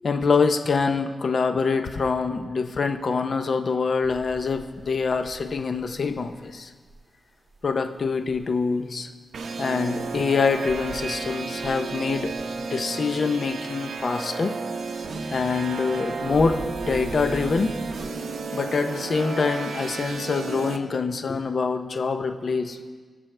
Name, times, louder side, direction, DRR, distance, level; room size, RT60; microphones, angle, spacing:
voice 1, 0.0-6.7 7.6-9.1 9.6-14.6 15.3-17.8 18.5-22.8, left 4 dB, 50° left, 7 dB, 0.6 m, -25 dB
sound 1, 4.0-9.1 9.3-11.3 11.6-14.3 14.6-18.1, right 2 dB, 35° right, 1.7 m, -44 dB
sound 2, 9.3-20.8, right 4 dB, 75° right, 0.7 m, -32 dB
17.5 x 6.2 x 3.3 m, 1.5 s
wide cardioid pair, 140°, 0 cm